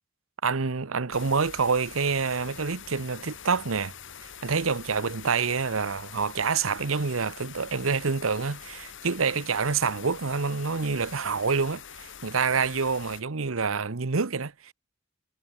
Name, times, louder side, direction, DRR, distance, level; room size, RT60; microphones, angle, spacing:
voice 1, 0.4-3.9 4.2-14.7, right 5 dB, 75° right, 1.0 m, -27 dB
sound 1, 1.1-13.2, left 8 dB, 65° left, 4.5 m, -45 dB
head